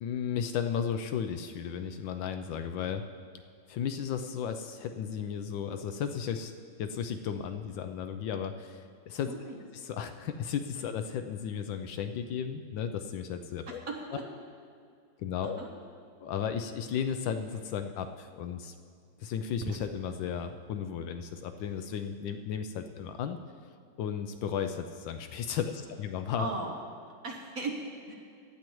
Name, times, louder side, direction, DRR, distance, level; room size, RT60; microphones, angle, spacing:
voice 1, 0.0-3.0 3.7-6.5 6.8-9.3 9.7-13.8 14.1-14.2 15.2-15.6 16.2-18.7 19.2-23.4 24.0-26.5, left 8 dB, 75° left, 7 dB, 1.2 m, -34 dB
voice 2, 9.3-9.6 13.7-14.2 15.4-15.7 26.4-26.7 27.2-28.1, right 3 dB, 50° right, 0 dB, 1.2 m, -37 dB
sound 1, 17.3-22.4, right 7 dB, 75° right, 1.5 m, -49 dB
17.0 x 11.5 x 3.1 m, 2.1 s
omnidirectional pair, 2.3 m